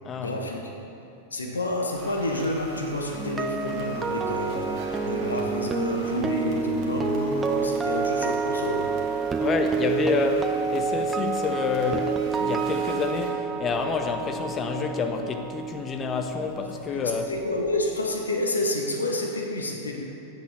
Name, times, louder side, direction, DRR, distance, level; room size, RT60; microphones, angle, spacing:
voice 1, 0.2-0.7 1.3-8.9 16.9-20.0, left 1 dB, 75° left, 1 dB, 1.0 m, -29 dB
sound 1, 1.9-13.3, right 2 dB, 40° right, 1.6 m, -43 dB
sound 2, 3.1-17.2 17.5-17.8, right 5 dB, 15° right, 0.5 m, -28 dB
voice 2, 9.4-17.3, left 5 dB, 25° left, 5 dB, 0.8 m, -28 dB
8.9 x 7.5 x 5.6 m, 2.8 s
figure-of-eight pair, 90°, 0 cm